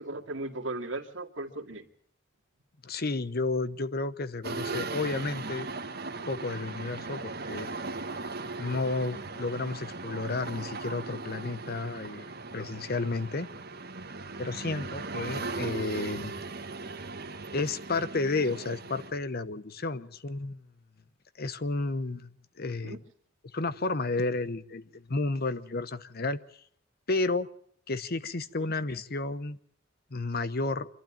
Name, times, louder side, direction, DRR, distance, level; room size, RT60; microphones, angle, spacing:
voice 1, 0.0-1.8 7.4-7.5 22.6-23.0 28.6-28.7, right 2 dB, 70° right, 2 dB, 2.4 m, -37 dB
voice 2, 2.8-5.7 6.3-7.7 8.6-13.5 14.4-16.3 17.5-20.6 21.4-22.3 22.6-23.0 23.5-26.4 27.1-27.5 27.9-29.6 30.1-30.9, left 3 dB, 50° left, 14 dB, 0.9 m, -32 dB
sound 1, 4.4-19.1, right 3 dB, 55° right, 1.9 m, -38 dB
26.0 x 12.0 x 8.8 m, 0.63 s
head